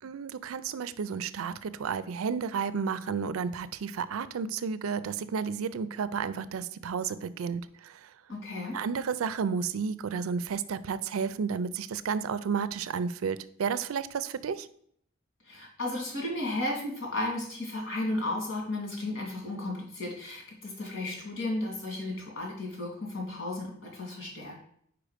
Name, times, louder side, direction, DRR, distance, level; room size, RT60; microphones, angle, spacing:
voice 1, 0.0-8.1 8.7-14.7, right 6 dB, 85° right, 14 dB, 0.4 m, -32 dB
voice 2, 8.3-8.8 15.4-24.6, left 2 dB, 65° left, 0 dB, 2.5 m, -34 dB
5.0 x 4.7 x 5.0 m, 0.65 s
head